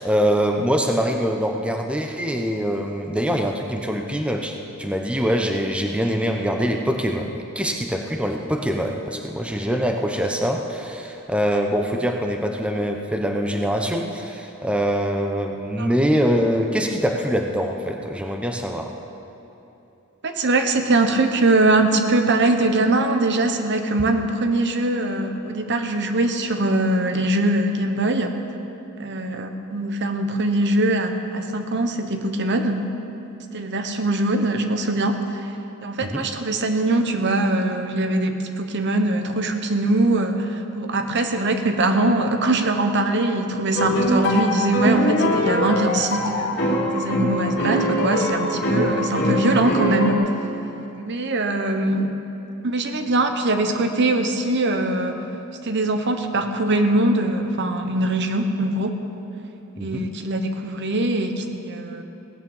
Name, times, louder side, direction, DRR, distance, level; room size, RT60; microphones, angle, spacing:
voice 1, 0.0-4.5 4.8-18.9 36.0-36.3 59.8-60.1, equal, 5° right, 3 dB, 0.8 m, -24 dB
voice 2, 20.2-28.3 29.0-32.9 33.5-35.2 35.8-46.5 46.9-50.3 50.9-52.1 52.6-55.2 55.6-59.0 59.8-62.0, right 2 dB, 55° right, 6 dB, 1.0 m, -22 dB
sound 1, 43.8-50.1, equal, 50° left, 2.5 m, -22 dB
17.0 x 9.0 x 7.2 m, 2.9 s
head